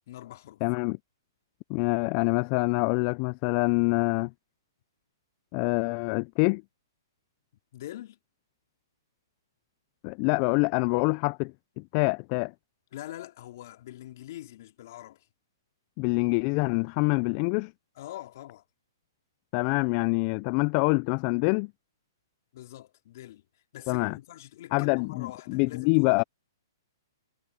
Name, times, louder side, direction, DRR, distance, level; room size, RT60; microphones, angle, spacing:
voice 1, 0.1-0.6 7.7-8.2 12.9-15.3 18.0-18.6 22.5-26.2, left 14 dB, 55° left, 2.8 m, -44 dB
voice 2, 0.6-1.0 1.7-4.3 5.5-6.6 10.0-12.5 16.0-17.7 19.5-21.7 23.9-24.2 24.7-26.2, left 32 dB, 40° left, 0.5 m, -26 dB
hypercardioid pair, 125°, 2 cm